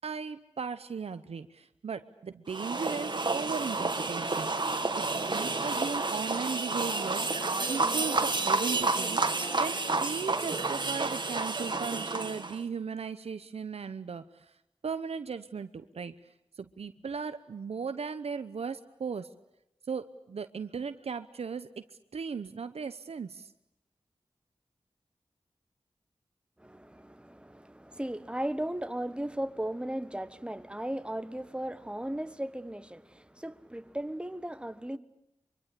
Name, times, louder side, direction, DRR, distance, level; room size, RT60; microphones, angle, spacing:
voice 1, 0.0-4.5 4.9-9.2 9.6-14.5 14.8-16.1 16.6-19.3 19.9-21.8 22.1-23.5, right 5 dB, 85° right, 0.9 m, -37 dB
sound 1, 2.5-12.6, right 3 dB, 50° right, 2.0 m, -30 dB
voice 2, 26.6-35.0, right 1 dB, 10° right, 1.5 m, -36 dB
24.5 x 24.5 x 8.4 m
cardioid pair, 50°, 10 cm